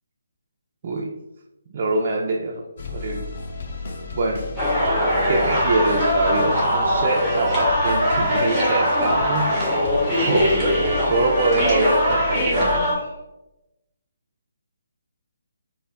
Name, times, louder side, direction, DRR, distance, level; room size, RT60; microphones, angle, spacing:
voice 1, 1.7-3.3 4.1-4.5 5.3-9.5 10.2-10.6 11.0-13.1, right 3 dB, 40° right, -1 dB, 0.3 m, -24 dB
sound 1, 2.8-12.8, left 3 dB, 50° left, 0.5 m, -33 dB
sound 2, 4.6-13.0, equal, 5° left, 0.9 m, -21 dB
3.4 x 2.0 x 2.4 m, 0.95 s
figure-of-eight pair, 150°, 0 cm